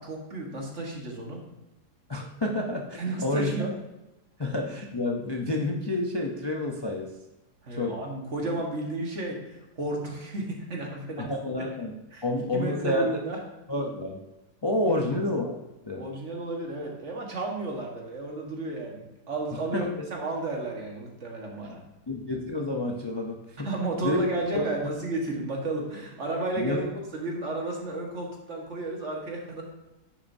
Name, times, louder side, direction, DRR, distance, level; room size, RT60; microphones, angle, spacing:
voice 1, 0.0-1.4 3.0-3.7 7.6-11.3 12.1-12.2 12.5-13.4 14.9-15.1 16.0-21.8 23.6-29.6, right 2 dB, 45° right, 0 dB, 1.8 m, -33 dB
voice 2, 2.1-3.5 4.4-7.1 7.7-8.0 11.2-11.9 12.2-13.2 13.7-14.2 14.6-15.5 15.9-16.1 19.7-19.9 22.1-23.7 24.0-24.3 24.5-24.7 26.6-26.9, left 1 dB, 45° left, 1 dB, 0.3 m, -29 dB
10.0 x 7.0 x 2.7 m, 1.0 s
omnidirectional pair, 1.7 m